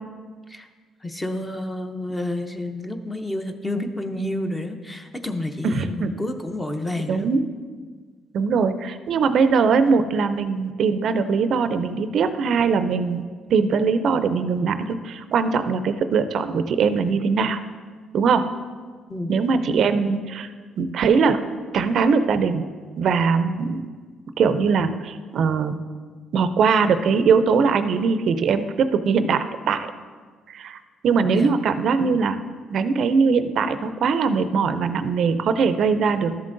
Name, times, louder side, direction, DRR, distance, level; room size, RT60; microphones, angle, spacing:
voice 1, 1.0-7.3 19.1-19.4 31.2-31.6, left 1 dB, 10° left, 6 dB, 0.6 m, -29 dB
voice 2, 5.6-6.1 7.1-7.4 8.3-13.2 13.5-17.6 18.1-18.4 19.3-20.5 20.8-21.4 21.7-22.7 23.0-23.8 24.4-25.8 26.3-29.9 30.5-32.4 32.7-36.3, right 5 dB, 60° right, 10 dB, 0.4 m, -21 dB
13.0 x 7.5 x 2.6 m, 1.5 s
cardioid pair, 110°, 0 cm